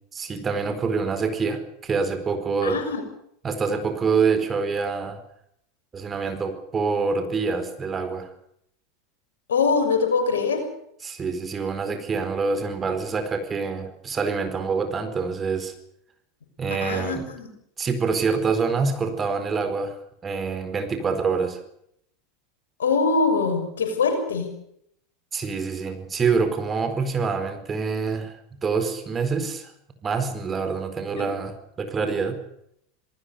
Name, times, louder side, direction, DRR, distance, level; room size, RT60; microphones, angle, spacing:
voice 1, 0.1-2.8 3.4-5.2 5.9-8.3 11.0-15.7 16.6-17.3 17.8-20.0 20.2-21.6 25.3-28.3 28.6-29.7 30.0-32.4, right 5 dB, 25° right, 8 dB, 4.6 m, -26 dB
voice 2, 2.6-3.0 9.5-10.7 16.7-17.5 22.8-24.5 31.2-31.3, left 4 dB, 75° left, 5 dB, 6.1 m, -23 dB
27.0 x 19.0 x 6.8 m, 0.72 s
figure-of-eight pair, 85°, 0 cm